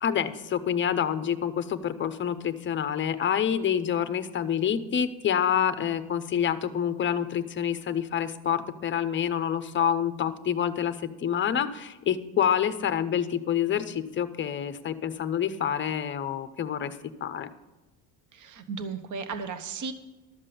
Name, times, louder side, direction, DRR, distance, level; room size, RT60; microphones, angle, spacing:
voice 1, 0.0-16.9 17.2-17.5, left 8 dB, 25° left, 12 dB, 0.6 m, -27 dB
voice 2, 18.3-19.9, right 5 dB, 40° right, 10 dB, 1.0 m, -35 dB
12.5 x 7.4 x 6.9 m, 1.1 s
cardioid pair, 150°, 45 cm